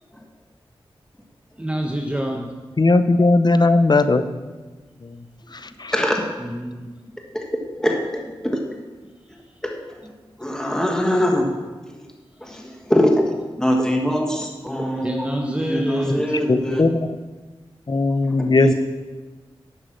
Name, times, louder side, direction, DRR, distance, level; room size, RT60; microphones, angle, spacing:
voice 1, 1.6-2.5 6.4-6.9 15.0-16.4, right 1 dB, 10° right, 1 dB, 1.1 m, -26 dB
voice 2, 2.8-4.2 5.8-5.9 16.5-16.9 17.9-18.7, left 3 dB, 45° left, 11 dB, 0.7 m, -17 dB
voice 3, 5.9-6.2 7.3-7.4 7.8-8.6 9.6-9.7 10.4-11.5 12.4-12.6 12.9-13.3 13.6-16.8 18.6-18.7, equal, 5° left, 1 dB, 1.6 m, -22 dB
10.0 x 6.6 x 6.4 m, 1.3 s
cardioid pair, 45°, 10 cm